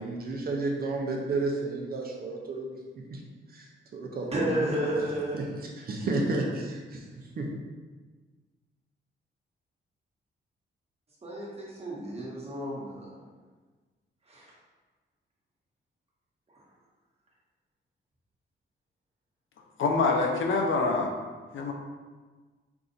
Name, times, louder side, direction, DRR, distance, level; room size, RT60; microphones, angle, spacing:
voice 1, 0.0-2.7 3.1-3.2 3.5-3.7 3.9-4.7 4.9-5.0 5.3-7.0 7.4-7.5, right 2 dB, 50° right, 0 dB, 0.7 m, -32 dB
voice 2, 4.3-5.4 11.2-13.2 14.3-14.4, right 1 dB, 30° right, -5 dB, 1.4 m, -31 dB
voice 3, 19.8-21.1 21.5-21.7, left 3 dB, 75° left, 1 dB, 0.7 m, -25 dB
4.7 x 2.6 x 4.0 m, 1.4 s
cardioid pair, 125°, 20 cm